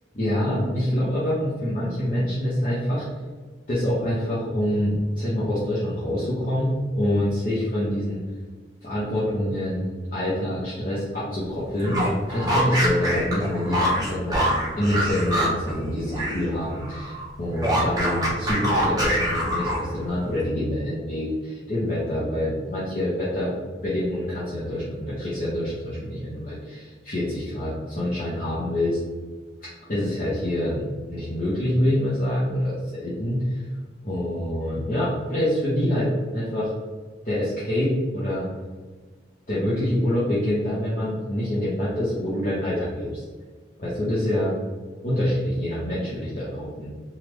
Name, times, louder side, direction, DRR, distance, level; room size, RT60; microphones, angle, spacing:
voice 1, 0.1-3.1 3.7-8.2 8.8-9.9 10.1-14.4 14.8-23.5 23.8-29.0 29.9-33.7 34.0-36.7 37.2-38.5 39.5-43.2 43.8-44.5 45.0-46.9, left 1 dB, 45° left, -10 dB, 0.8 m, -26 dB
sound 1, 11.7-16.5 16.7-20.0, equal, 20° right, 0.7 m, -25 dB
3.3 x 2.4 x 3.0 m, 1.4 s
head